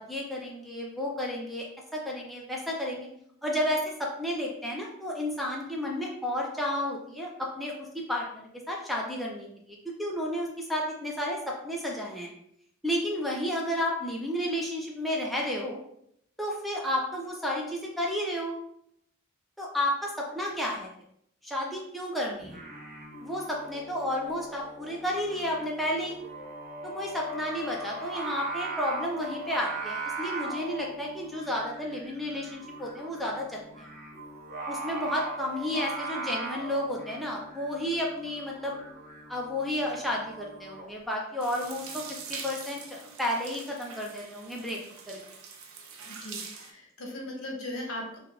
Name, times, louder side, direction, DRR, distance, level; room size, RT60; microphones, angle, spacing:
voice 1, 0.0-1.6 1.9-3.1 3.4-7.7 8.1-12.3 12.8-15.8 16.4-18.6 19.6-20.9 21.4-22.6 23.2-26.2 26.8-33.9 34.7-38.8 39.3-42.0 42.3-44.8 45.1-45.2, left 1 dB, ahead, -3 dB, 0.4 m, -32 dB
Singing, 22.4-40.9, right 2 dB, 45° right, 0.7 m, -39 dB
sound 1, 41.4-46.7, right 5 dB, 75° right, 0.5 m, -43 dB
voice 2, 46.1-48.2, left 1 dB, 75° left, 0 dB, 0.8 m, -38 dB
3.2 x 2.2 x 2.3 m, 0.72 s
head